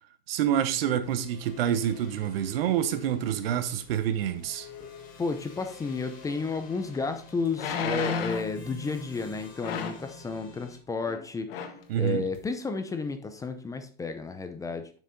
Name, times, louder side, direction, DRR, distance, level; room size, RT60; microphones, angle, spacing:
voice 1, 0.3-4.7 11.9-12.2, right 10 dB, 70° right, 1.1 m, -27 dB
sound 1, 1.0-10.8, left 2 dB, 25° left, 2.1 m, -49 dB
voice 2, 5.2-11.5 12.0-14.9, left 4 dB, 10° left, 0.6 m, -32 dB
sound 2, 6.5-6.6 7.5-8.6 9.6-10.1 11.0-11.2 11.5-11.8 12.4-12.5, left 6 dB, 70° left, 1.5 m, -31 dB
7.1 x 6.2 x 3.8 m
supercardioid pair, 135°, 30 cm